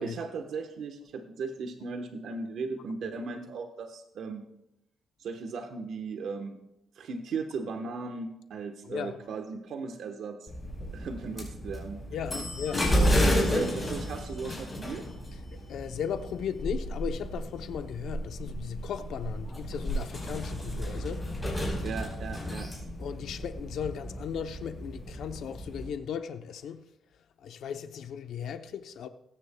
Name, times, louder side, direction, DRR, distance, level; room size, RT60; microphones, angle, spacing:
voice 1, 0.0-4.5 5.2-6.6 7.0-10.5 10.9-12.0 12.9-15.1 21.8-22.7, right 4 dB, 70° right, 1.2 m, -37 dB
voice 2, 8.8-9.2 12.1-12.9 15.7-21.2 23.0-26.9 27.4-29.1, left 8 dB, 75° left, 0.7 m, -36 dB
sound 1, 10.5-25.9, equal, 15° left, 4.5 m, -32 dB
21.0 x 10.0 x 2.3 m
cardioid pair, 135°, 0 cm